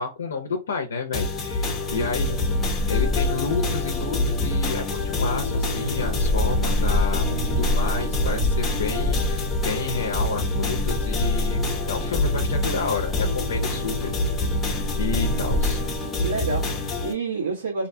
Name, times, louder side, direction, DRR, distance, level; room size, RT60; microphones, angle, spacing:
voice 1, 0.0-2.3 2.9-14.1 14.5-14.6 14.9-15.8, left 4 dB, 90° left, 0.5 m, -30 dB
sound 1, 1.1-17.1, left 2 dB, 20° left, 0.7 m, -27 dB
sound 2, 1.9-16.0, left 1 dB, 35° right, 0.7 m, -28 dB
voice 2, 16.2-17.9, right 4 dB, 85° right, 1.2 m, -29 dB
2.6 x 2.2 x 2.6 m
hypercardioid pair, 135°, 0 cm